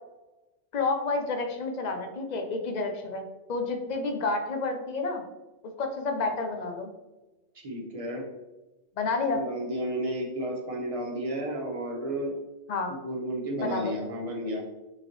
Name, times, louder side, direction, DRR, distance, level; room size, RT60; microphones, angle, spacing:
voice 1, 0.7-5.2 5.8-6.9 9.0-9.4 12.7-12.9 13.6-13.9, left 3 dB, 50° left, 4 dB, 0.5 m, -30 dB
voice 2, 7.5-8.2 9.3-12.3 12.9-14.6, right 1 dB, 30° right, -1 dB, 0.9 m, -32 dB
5.3 x 2.9 x 3.0 m, 1.1 s
omnidirectional pair, 1.3 m